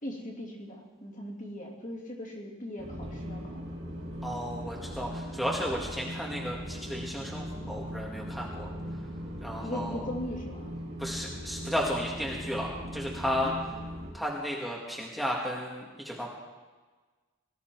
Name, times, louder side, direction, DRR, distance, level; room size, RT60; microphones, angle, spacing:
voice 1, 0.0-3.7 9.6-10.7 13.4-13.5, left 1 dB, 40° left, -2 dB, 2.8 m, -39 dB
sound 1, 2.8-14.1, equal, 75° right, 4.3 m, -39 dB
voice 2, 4.2-8.7 9.4-10.0 11.0-13.5 14.1-16.3, equal, ahead, -3 dB, 1.7 m, -33 dB
19.0 x 13.0 x 4.6 m, 1.3 s
head